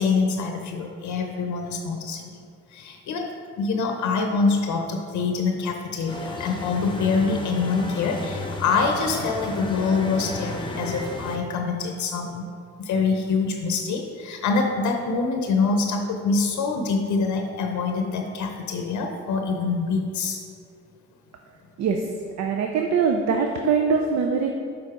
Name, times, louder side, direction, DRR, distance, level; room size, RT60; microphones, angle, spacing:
voice 1, 0.0-2.3 2.7-12.5 12.8-20.4, left 4 dB, 70° left, 3 dB, 0.7 m, -25 dB
sound 1, 6.1-11.4, left 2 dB, 15° left, 0.8 m, -33 dB
voice 2, 21.8-22.1 22.4-24.5, right 5 dB, 60° right, 3 dB, 0.6 m, -22 dB
6.6 x 4.1 x 4.8 m, 2.4 s
cardioid pair, 90°, 30 cm